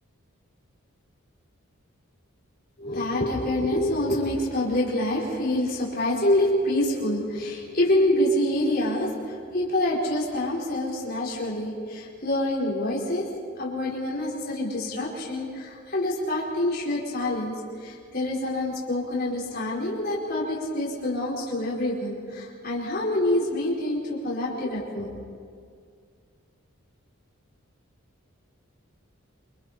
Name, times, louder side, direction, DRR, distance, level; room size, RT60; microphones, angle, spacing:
voice 1, 2.8-13.3 13.6-25.2, left 1 dB, 45° left, -6 dB, 4.9 m, -26 dB
27.0 x 26.0 x 4.4 m, 2.2 s
head